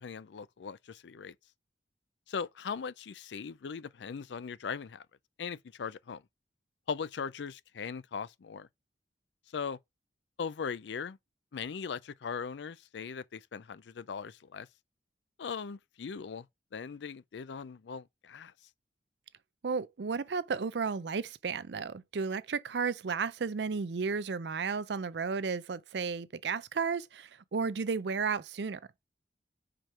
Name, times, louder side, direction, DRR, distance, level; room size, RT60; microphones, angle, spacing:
voice 1, 0.0-1.3 2.3-5.0 5.4-6.2 6.9-8.7 9.5-9.8 10.4-11.2 11.5-14.7 15.4-16.5 16.7-18.5, left 6 dB, 85° left, 0.4 m, -39 dB
voice 2, 19.6-28.8, right 5 dB, 70° right, 0.5 m, -33 dB
5.0 x 4.5 x 5.8 m
head